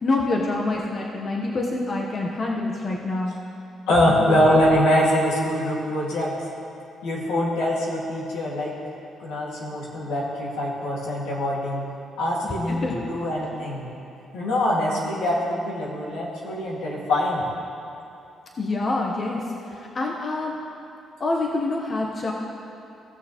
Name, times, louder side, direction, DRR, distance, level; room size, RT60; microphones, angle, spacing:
voice 1, 0.0-3.4 4.2-4.3 12.7-13.0 18.6-19.4 19.7-20.6 21.2-22.3, left 2 dB, 40° left, -1 dB, 1.0 m, -26 dB
voice 2, 3.9-6.3 7.0-8.7 9.2-11.8 12.2-13.9 14.3-17.5, left 1 dB, 90° left, -4 dB, 2.0 m, -23 dB
16.5 x 6.5 x 3.0 m, 2.7 s
cardioid pair, 90°, 0 cm